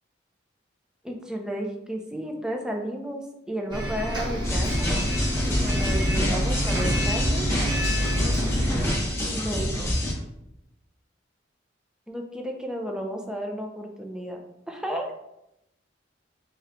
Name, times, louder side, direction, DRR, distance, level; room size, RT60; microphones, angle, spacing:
voice 1, 1.0-5.0 5.5-7.5 9.3-9.9 12.1-14.4 14.7-15.1, equal, 5° right, 2 dB, 0.5 m, -33 dB
Bus, 3.7-8.9, equal, 25° right, 1.3 m, -27 dB
sound 1, 4.4-10.1, left 1 dB, 15° left, 0.9 m, -27 dB
3.3 x 3.0 x 3.5 m, 0.84 s
head